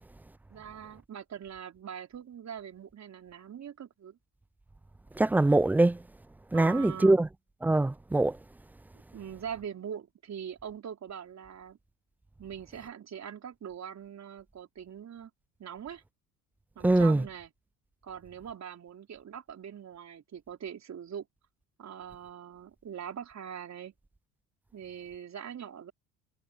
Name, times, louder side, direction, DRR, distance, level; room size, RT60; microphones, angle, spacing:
voice 1, 0.5-4.2 6.5-7.2 9.1-11.8 12.4-15.3 15.6-16.0 16.8-17.5 18.0-21.3 21.8-23.9 24.7-25.9, right 8 dB, 35° right, 4.3 m, -42 dB
voice 2, 5.2-6.0 6.5-7.3 7.6-8.4 16.8-17.2, right 2 dB, 5° right, 0.3 m, -23 dB
hypercardioid pair, 75°, 44 cm